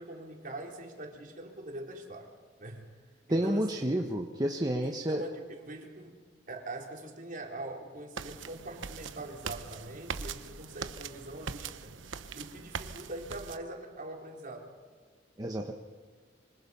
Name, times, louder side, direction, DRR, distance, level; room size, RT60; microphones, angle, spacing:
voice 1, 0.0-2.3 2.6-2.9 3.3-4.1 4.8-11.9 12.3-14.7, right 2 dB, 45° right, 1 dB, 3.9 m, -43 dB
voice 2, 3.3-5.2 15.4-15.7, right 1 dB, 20° right, 2 dB, 1.2 m, -30 dB
sound 1, 8.2-13.6, right 5 dB, 90° right, 1.0 m, -41 dB
26.5 x 25.0 x 5.6 m, 1.6 s
head